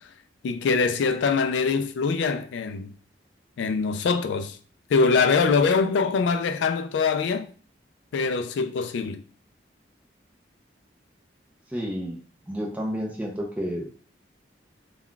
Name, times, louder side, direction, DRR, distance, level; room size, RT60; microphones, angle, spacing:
voice 1, 0.4-2.9 3.6-4.6 4.9-7.5 8.1-9.2, left 4 dB, 75° left, 0.3 m, -23 dB
voice 2, 11.7-12.2 12.5-13.9, equal, 10° right, 0.4 m, -30 dB
2.3 x 2.2 x 3.7 m
head